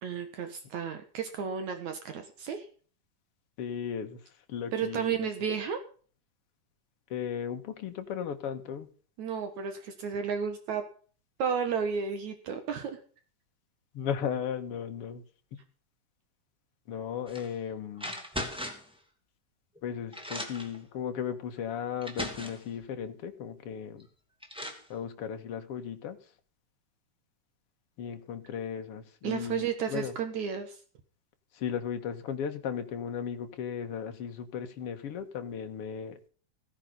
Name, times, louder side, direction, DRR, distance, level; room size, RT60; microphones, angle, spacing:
voice 1, 0.0-2.7 4.7-5.8 9.2-10.8 11.4-13.0 29.2-30.8, right 7 dB, 70° right, 7 dB, 2.7 m, -32 dB
voice 2, 3.6-4.2 4.5-5.3 7.1-8.9 13.9-15.2 16.9-18.1 19.8-24.1 24.9-26.2 28.0-30.1 31.5-36.2, left 8 dB, 55° left, 6 dB, 2.1 m, -36 dB
sound 1, 17.3-17.5 18.0-18.9 19.8-19.9 20.1-20.8 21.6-21.7 22.0-22.7 24.0-24.1 24.4-24.9, left 1 dB, ahead, 2.3 m, -38 dB
16.0 x 10.0 x 5.5 m, 0.42 s
omnidirectional pair, 3.5 m